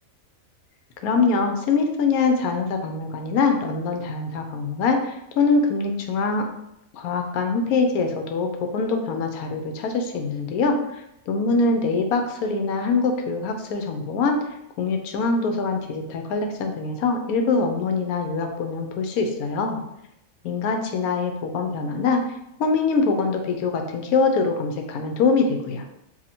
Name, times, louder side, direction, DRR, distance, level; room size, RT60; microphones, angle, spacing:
voice 1, 1.0-6.5 6.9-14.4 14.8-19.8 20.4-22.2 22.6-25.8, left 4 dB, 90° left, 4 dB, 1.1 m, -23 dB
2.8 x 2.6 x 4.1 m, 0.83 s
omnidirectional pair, 1.5 m